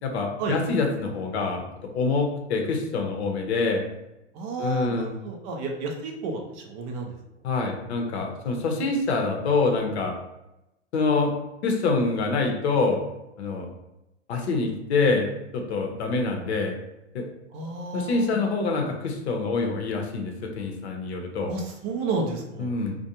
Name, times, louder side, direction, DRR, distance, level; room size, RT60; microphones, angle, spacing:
voice 1, 0.0-1.6 1.9-3.8 4.6-5.1 7.4-10.1 10.9-11.3 11.6-13.0 13.4-13.7 14.3-16.7 17.1-17.2 17.9-21.5 22.6-23.0, left 3 dB, 65° left, 2 dB, 0.7 m, -25 dB
voice 2, 4.3-7.1 17.5-18.3 21.5-22.7, right 3 dB, 35° right, 1 dB, 0.4 m, -31 dB
2.4 x 2.1 x 2.8 m, 0.91 s
hypercardioid pair, 105°, 36 cm